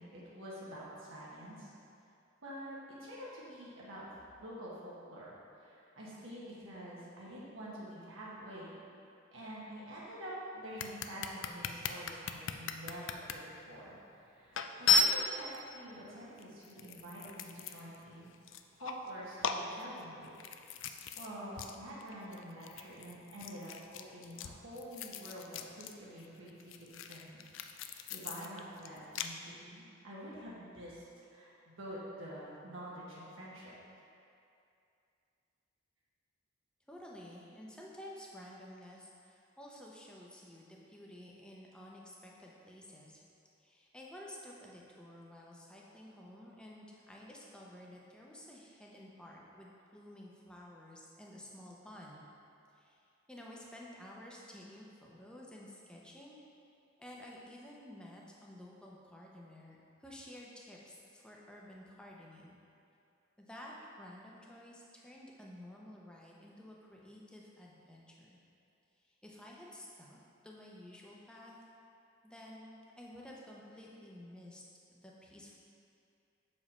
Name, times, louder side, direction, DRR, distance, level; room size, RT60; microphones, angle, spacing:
voice 1, 0.0-1.7 2.4-4.0 4.4-8.7 9.3-13.9 14.3-18.3 18.8-20.6 20.8-27.4 27.7-31.0 31.3-33.7, equal, 80° right, -7 dB, 1.3 m, -47 dB
sound 1, 10.8-13.3 14.0-14.1 14.5-15.6 16.4-18.0 18.3-19.1 19.4-21.3 21.6-21.8 22.0-25.9 26.2-29.3, left 4 dB, 70° left, 0.4 m, -35 dB
voice 2, 36.9-43.2 43.6-52.3 52.7-56.4 57.0-62.6 63.4-68.4 69.2-70.2 70.4-71.5 72.2-74.6 74.9-75.6, left 1 dB, 5° left, -3 dB, 0.7 m, -52 dB
6.8 x 5.0 x 4.2 m, 2.6 s
head